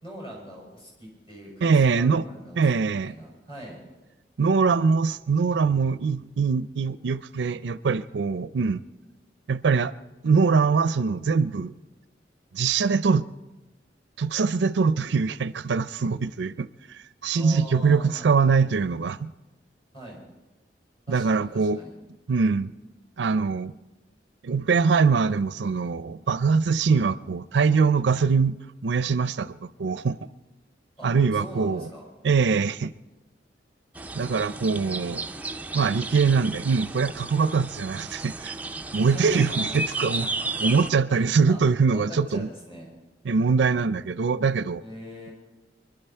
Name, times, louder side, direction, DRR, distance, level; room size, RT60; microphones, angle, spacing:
voice 1, 0.0-3.8 17.3-18.3 19.9-20.2 21.1-21.9 31.0-32.0 39.0-39.7 40.2-40.7 41.1-41.6 41.9-42.9 44.8-45.3, equal, 30° left, -3 dB, 6.3 m, -42 dB
voice 2, 1.6-2.2 2.6-3.1 4.4-8.8 9.5-9.9 10.2-11.7 12.5-13.2 14.2-19.3 21.1-21.8 22.3-22.7 23.2-23.7 24.4-28.6 28.8-30.2 31.0-31.9 32.2-32.9 34.1-35.2 35.7-38.6 38.9-40.3 40.6-42.5 43.2-44.8, right 5 dB, 70° right, 16 dB, 0.4 m, -23 dB
sound 1, 33.9-40.9, right 2 dB, 10° right, 0.4 m, -33 dB
25.0 x 12.0 x 4.4 m, 1.1 s
head